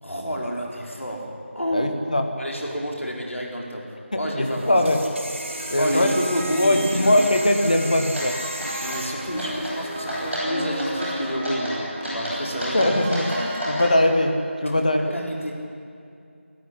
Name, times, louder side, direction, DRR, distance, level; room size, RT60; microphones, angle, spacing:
voice 1, 0.0-1.9 2.4-4.8 5.8-7.2 8.8-12.9 14.6-15.5, equal, 75° left, -1 dB, 4.9 m, -29 dB
voice 2, 1.7-2.3 4.1-5.0 5.7-6.1 6.6-8.4 12.7-14.4 14.6-15.0, left 1 dB, 35° left, 5 dB, 1.6 m, -21 dB
sound 1, 4.4-10.4, right 1 dB, 65° right, 4.3 m, -36 dB
sound 2, 5.4-13.9, right 1 dB, 10° right, 1.2 m, -35 dB
sound 3, 8.1-8.3 8.6-9.0 9.4-9.7 10.1-10.5 10.8-11.1 11.4-11.8 12.0-13.9, equal, 5° left, 5.0 m, -30 dB
20.5 x 14.5 x 10.0 m, 2.5 s
figure-of-eight pair, 175°, 7 cm